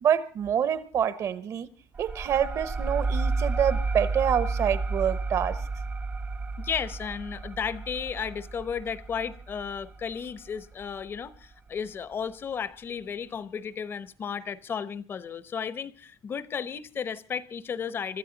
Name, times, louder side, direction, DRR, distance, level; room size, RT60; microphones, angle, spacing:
voice 1, 0.0-1.7 2.0-5.6, right 8 dB, 45° right, 1.1 m, -26 dB
sound 1, 1.9-11.2, right 3 dB, 25° right, 0.7 m, -32 dB
voice 2, 6.6-18.2, left 7 dB, 30° left, 0.9 m, -34 dB
24.5 x 13.5 x 4.0 m
cardioid pair, 170°, 7 cm